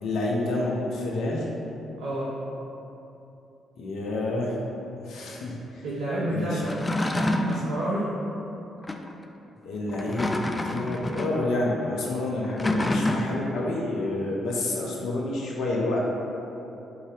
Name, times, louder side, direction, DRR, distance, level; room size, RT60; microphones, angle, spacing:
voice 1, 0.0-1.5 3.8-4.6 5.0-5.8 6.3-6.6 9.6-16.0, left 2 dB, 65° left, -3 dB, 0.6 m, -29 dB
voice 2, 2.0-2.4 5.8-6.8 7.5-8.2, right 1 dB, 65° right, -7 dB, 0.6 m, -29 dB
sound 1, 6.6-7.7 8.8-9.1 9.9-11.4 12.4-13.5, left 1 dB, 20° left, 0.3 m, -27 dB
4.7 x 2.7 x 3.2 m, 3.0 s
figure-of-eight pair, 40°, 0 cm